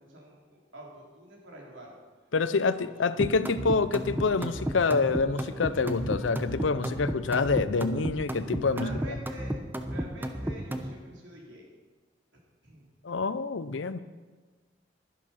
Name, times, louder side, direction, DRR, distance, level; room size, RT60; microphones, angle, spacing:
voice 1, 0.0-2.0 2.5-3.3 8.7-9.6 9.9-11.7 12.6-12.9, right 1 dB, 85° right, -2 dB, 3.6 m, -47 dB
voice 2, 2.3-9.0 13.0-14.0, left 4 dB, 85° left, 14 dB, 0.6 m, -27 dB
sound 1, 3.2-10.9, right 1 dB, 10° right, 0.8 m, -33 dB
Wind instrument woodwind instrument, 3.9-8.3, equal, 35° right, 3.0 m, -56 dB
11.5 x 11.0 x 5.8 m, 1.3 s
head